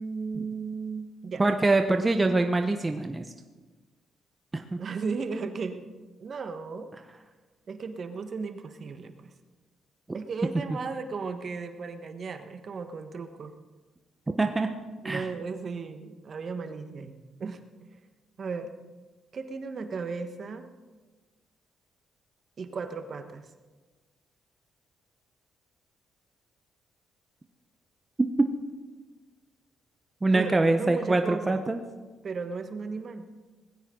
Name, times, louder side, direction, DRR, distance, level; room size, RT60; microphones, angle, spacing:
voice 1, 0.0-1.4 4.8-5.8 6.2-6.9 7.7-9.3 10.1-13.5 15.0-17.6 18.4-18.7 19.3-20.6 22.6-23.4 30.3-31.6 32.2-33.3, right 4 dB, 50° right, 7 dB, 1.4 m, -35 dB
voice 2, 1.4-3.3 4.5-4.8 14.4-14.7 15.0-15.2 30.2-31.8, right 2 dB, 20° right, 5 dB, 0.9 m, -24 dB
19.0 x 15.5 x 3.9 m, 1.3 s
cardioid pair, 90°, 0 cm